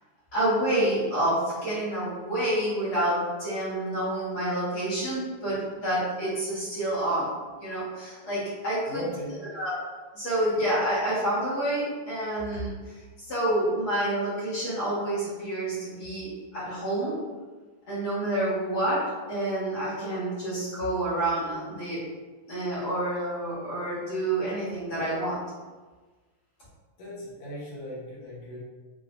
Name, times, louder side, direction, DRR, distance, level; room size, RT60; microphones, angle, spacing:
voice 1, 0.3-7.3 7.6-9.0 9.5-9.8 10.1-17.2 17.9-22.0 22.5-25.4, right 1 dB, 50° left, -10 dB, 2.1 m, -28 dB
voice 2, 8.9-9.4 27.0-28.6, left 1 dB, 70° left, -7 dB, 2.5 m, -37 dB
6.1 x 2.8 x 2.6 m, 1.3 s
omnidirectional pair, 3.3 m